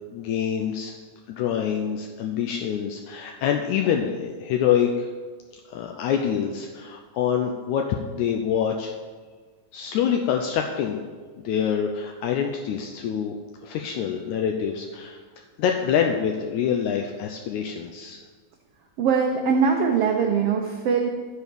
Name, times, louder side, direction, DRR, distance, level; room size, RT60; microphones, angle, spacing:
voice 1, 0.1-0.9 1.3-5.1 5.7-8.9 9.7-11.0 11.4-13.4 13.6-15.2 15.6-18.2, left 8 dB, 80° left, 3 dB, 1.9 m, -26 dB
voice 2, 19.0-21.1, right 6 dB, 85° right, 2 dB, 1.3 m, -22 dB
13.5 x 4.6 x 5.2 m, 1.5 s
omnidirectional pair, 3.7 m